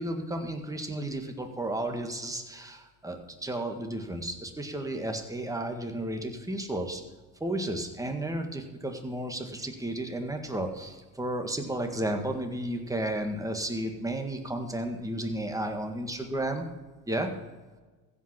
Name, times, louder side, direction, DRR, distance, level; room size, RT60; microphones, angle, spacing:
voice 1, 0.0-7.0 7.4-16.7 17.1-17.3, right 1 dB, 10° right, 4 dB, 1.7 m, -33 dB
15.5 x 5.5 x 5.9 m, 1.3 s
supercardioid pair, 80°, 43 cm